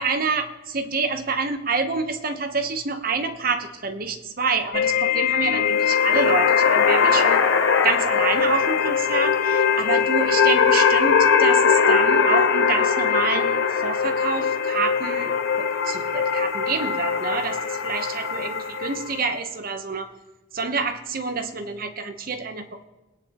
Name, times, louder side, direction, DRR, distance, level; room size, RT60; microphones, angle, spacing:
voice 1, 0.0-7.4 7.8-20.1 20.5-22.8, right 4 dB, 50° right, 8 dB, 1.0 m, -27 dB
sound 1, 4.7-19.2, left 7 dB, 50° left, 0.4 m, -24 dB
sound 2, 5.7-19.1, left 5 dB, 80° left, 0.7 m, -23 dB
23.0 x 9.7 x 3.0 m, 1.1 s
head